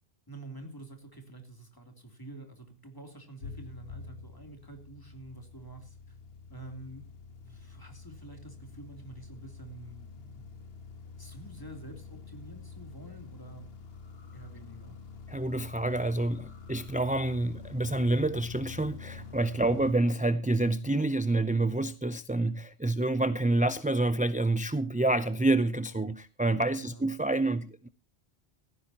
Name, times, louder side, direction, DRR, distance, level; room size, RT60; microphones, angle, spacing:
voice 1, 0.3-6.2 6.5-7.1 7.4-10.4 11.2-13.7 14.3-15.0 19.6-19.9 26.7-27.1, right 2 dB, 20° left, 3.2 m, -48 dB
sound 1, 3.4-19.9, left 5 dB, 75° left, 1.5 m, -47 dB
voice 2, 15.3-27.9, right 2 dB, 10° right, 0.4 m, -28 dB
17.0 x 15.0 x 2.9 m
omnidirectional pair, 1.0 m